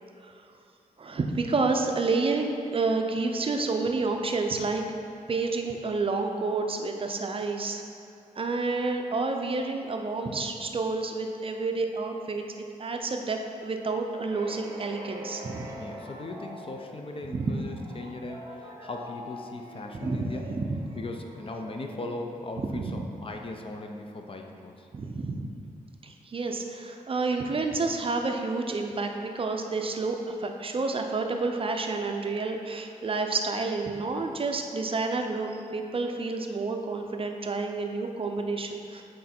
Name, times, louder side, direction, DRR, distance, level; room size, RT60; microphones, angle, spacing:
voice 1, 1.0-4.8 5.3-7.8 8.4-12.4 12.8-15.7 17.3-17.6 20.0-20.7 22.6-23.0 24.9-25.5 26.0-39.0, right 3 dB, 40° right, 4 dB, 0.5 m, -29 dB
sound 1, 14.3-23.0, equal, 20° right, 0.9 m, -45 dB
voice 2, 15.7-20.5 21.0-24.9, left 2 dB, 40° left, 3 dB, 0.5 m, -38 dB
6.3 x 3.8 x 4.3 m, 2.5 s
wide cardioid pair, 95°, 14 cm